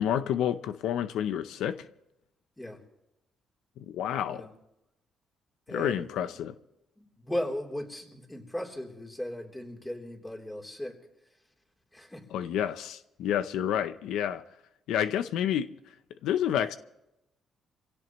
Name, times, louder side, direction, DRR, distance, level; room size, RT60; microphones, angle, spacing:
voice 1, 0.0-1.9 3.9-4.4 5.7-6.5 12.3-14.4 14.9-15.7 16.2-16.8, left 10 dB, 85° left, 0.6 m, -29 dB
voice 2, 5.7-6.1 7.0-11.0 11.9-12.2, left 1 dB, 10° left, 3.4 m, -37 dB
25.5 x 16.5 x 3.1 m
cardioid pair, 90°, 0 cm